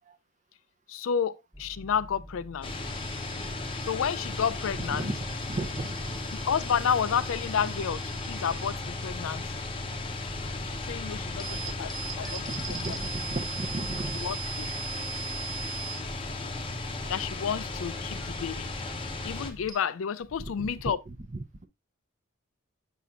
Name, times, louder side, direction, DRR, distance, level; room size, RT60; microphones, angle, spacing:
voice 1, 0.9-2.8 3.8-5.1 6.3-9.5 10.6-12.5 12.9-13.0 14.2-14.7 17.1-18.7 19.2-21.0, left 7 dB, 85° left, 0.4 m, -31 dB
sound 1, 1.5-19.7, right 6 dB, 20° right, 1.1 m, -42 dB
sound 2, 2.6-19.5, left 2 dB, 25° left, 0.7 m, -36 dB
voice 2, 4.9-6.3 12.2-14.3 20.4-21.7, right 2 dB, 35° right, 0.6 m, -36 dB
6.9 x 5.9 x 2.4 m
head